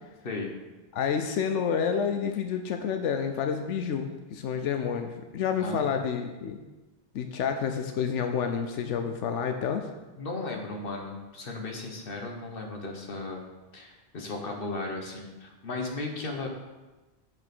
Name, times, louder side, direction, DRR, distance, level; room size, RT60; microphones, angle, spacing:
voice 1, 0.9-6.6 7.1-9.9, left 7 dB, 90° left, 6 dB, 1.0 m, -29 dB
voice 2, 5.6-5.9 10.2-13.4 13.7-16.5, left 3 dB, 50° left, 2 dB, 1.5 m, -36 dB
7.1 x 6.2 x 6.1 m, 1.2 s
omnidirectional pair, 1.2 m